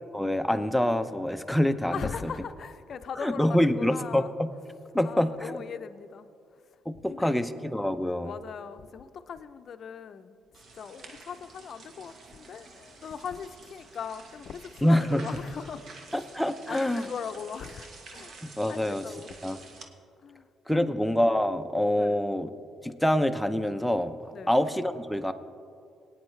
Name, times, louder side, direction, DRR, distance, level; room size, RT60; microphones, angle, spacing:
voice 1, 0.1-1.9 3.2-4.2 4.9-5.6 6.9-8.3 14.8-15.2 16.1-17.0 18.4-19.0 19.4-19.6 20.7-22.5 22.8-25.3, left 1 dB, ahead, 0.6 m, -26 dB
voice 2, 1.9-4.3 5.0-6.6 6.9-7.4 8.2-10.4 10.7-16.3 16.7-18.4 18.7-19.4 20.2-20.5 20.7-21.0 21.9-22.2 24.3-24.6, left 7 dB, 60° left, 0.5 m, -40 dB
sound 1, 10.5-19.9, right 3 dB, 60° right, 1.2 m, -49 dB
19.5 x 9.3 x 3.2 m
cardioid pair, 90°, 0 cm